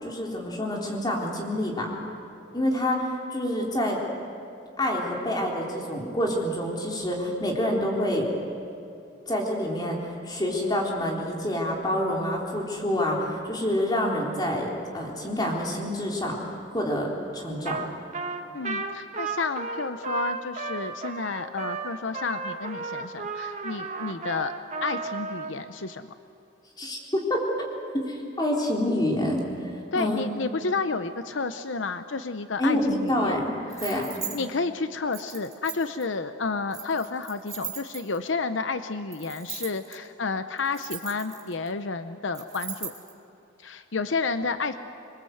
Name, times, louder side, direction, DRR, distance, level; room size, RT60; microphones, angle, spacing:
voice 1, 0.0-2.0 2.5-4.0 4.8-8.3 9.3-17.8 26.8-27.5 27.9-29.5 29.9-30.5 32.6-33.5 33.8-34.2, left 1 dB, 20° left, -1 dB, 3.8 m, -27 dB
Trumpet, 17.6-17.9 18.1-25.5, right 4 dB, 35° right, 1.6 m, -33 dB
voice 2, 18.5-24.5 24.8-26.1 29.9-33.4 33.7-34.0 34.3-42.9 43.6-44.8, left 4 dB, 75° left, 10 dB, 0.8 m, -31 dB
sound 1, 33.7-34.4 35.1-36.0 36.7-38.3 39.1-39.9 40.6-41.7 42.3-43.1, right 7 dB, 20° right, 3.0 m, -38 dB
26.0 x 22.5 x 7.9 m, 2.7 s
head